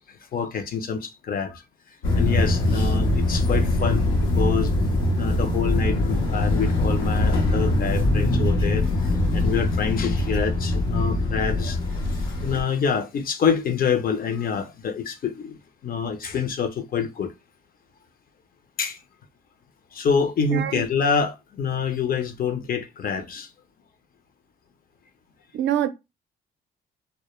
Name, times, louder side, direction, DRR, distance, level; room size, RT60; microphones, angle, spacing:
voice 1, 0.1-1.6 2.1-4.7 5.2-15.6 15.8-17.3 18.8-19.0 19.9-23.5, left 6 dB, 45° left, 0.5 m, -26 dB
sound 1, 2.0-12.6, left 1 dB, 90° left, 0.7 m, -22 dB
voice 2, 20.5-20.9 25.5-25.9, right 11 dB, 65° right, 0.4 m, -25 dB
2.1 x 2.1 x 3.0 m
cardioid pair, 90°, 20 cm